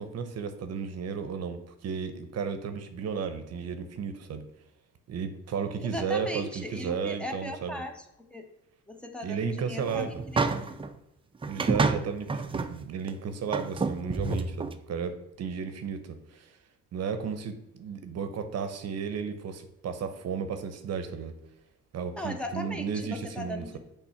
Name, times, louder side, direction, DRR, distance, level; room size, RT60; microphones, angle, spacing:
voice 1, 0.0-4.4 5.1-7.8 9.2-10.2 11.4-16.6 16.9-21.3 21.9-23.8, right 6 dB, 60° right, 9 dB, 0.7 m, -34 dB
voice 2, 5.8-8.5 8.9-10.8 22.2-23.8, equal, 5° left, 4 dB, 0.9 m, -38 dB
sound 1, 9.8-10.9 11.4-12.7 13.1-13.2 13.5-14.7, right 4 dB, 20° right, 0.5 m, -29 dB
6.0 x 3.5 x 5.7 m, 0.87 s
cardioid pair, 100°, 29 cm